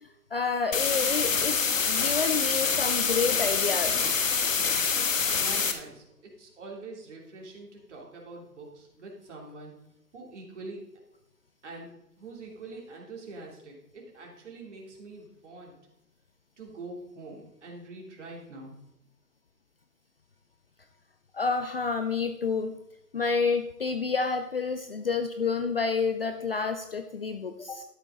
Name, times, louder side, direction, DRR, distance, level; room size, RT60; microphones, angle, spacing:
voice 1, 0.0-4.1 21.3-22.7 23.1-27.8, left 5 dB, 40° left, 8 dB, 0.6 m, -29 dB
sound 1, 0.7-5.7, left 5 dB, 55° left, 1.4 m, -26 dB
voice 2, 5.4-9.7 10.1-10.8 11.6-11.9 12.2-15.7 16.6-18.7, right 3 dB, 50° right, -1 dB, 3.2 m, -44 dB
12.0 x 8.9 x 3.8 m, 0.84 s
figure-of-eight pair, 145°, 47 cm